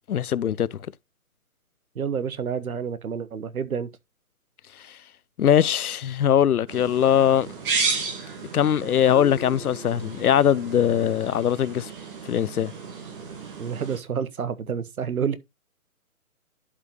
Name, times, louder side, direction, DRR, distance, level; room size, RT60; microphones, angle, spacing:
voice 1, 0.1-0.8 4.7-5.0 5.4-7.5 8.5-11.9 12.3-12.7, left 9 dB, 80° left, 0.6 m, -21 dB
voice 2, 2.0-3.9 13.6-15.4, right 7 dB, 70° right, 1.1 m, -29 dB
sound 1, 6.7-14.0, right 4 dB, 35° right, 2.9 m, -33 dB
Marimba xylophone, 9.1-10.9, left 7 dB, 50° left, 1.6 m, -42 dB
11.5 x 4.9 x 2.9 m
figure-of-eight pair, 150°, 44 cm